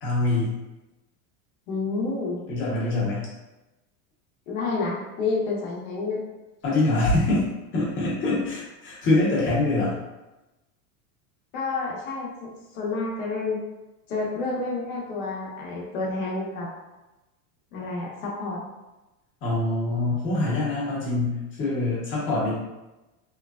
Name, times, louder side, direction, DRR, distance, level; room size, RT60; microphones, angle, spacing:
voice 1, 0.0-0.6 2.5-3.2 6.6-7.4 7.7-10.0 19.4-22.6, left 2 dB, 25° left, -6 dB, 0.9 m, -24 dB
voice 2, 1.7-2.4 4.5-6.2 11.5-13.6 14.1-16.7 17.7-18.6, left 3 dB, 70° left, -3 dB, 1.0 m, -29 dB
3.1 x 2.2 x 2.3 m, 1.0 s
supercardioid pair, 145°, 43 cm